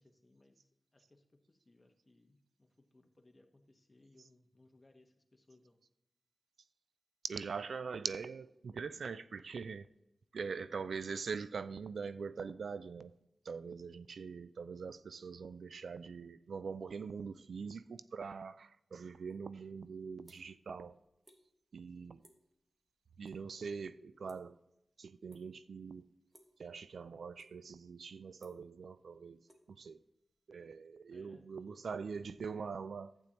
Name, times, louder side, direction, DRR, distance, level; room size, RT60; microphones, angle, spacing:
voice 1, 0.0-5.8 31.1-31.5, left 2 dB, 30° left, 1.2 m, -66 dB
voice 2, 7.3-9.9 10.3-13.1 13.5-21.0 21.7-22.2 23.2-24.6 25.0-26.1 26.6-30.0 30.5-33.1, right 5 dB, 90° right, 0.3 m, -43 dB
sound 1, 19.3-19.5 19.8-20.7 21.0-21.4 21.7-21.9 22.2-22.5 22.9-23.4 23.6-24.8 25.3-25.7 26.3-26.6 27.1-27.8 28.1-30.3, right 1 dB, 35° right, 1.5 m, -65 dB
11.5 x 8.5 x 3.0 m
cardioid pair, 55°, 0 cm